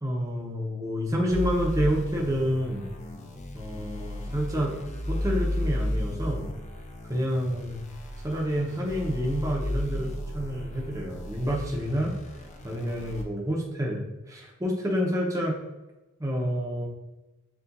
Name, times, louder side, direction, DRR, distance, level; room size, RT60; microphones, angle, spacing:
voice 1, 0.0-2.9 3.5-4.7 5.1-6.5 7.1-7.9 8.2-10.1 10.3-12.1 12.6-14.0 14.3-15.6 16.2-16.9, equal, 15° right, -1 dB, 0.8 m, -28 dB
sound 1, 1.3-13.2, left 1 dB, 35° left, 0.5 m, -34 dB
7.0 x 2.4 x 2.6 m, 1.1 s
head